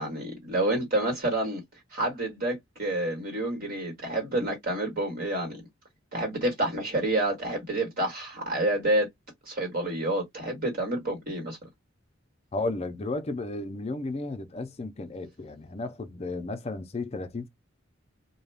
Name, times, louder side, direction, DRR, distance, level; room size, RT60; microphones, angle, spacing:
voice 1, 0.0-1.6 1.9-5.6 6.1-9.1 9.5-11.6, right 1 dB, 50° right, 1.5 m, -28 dB
voice 2, 12.5-17.5, left 2 dB, 30° left, 0.5 m, -33 dB
2.3 x 2.2 x 3.3 m
head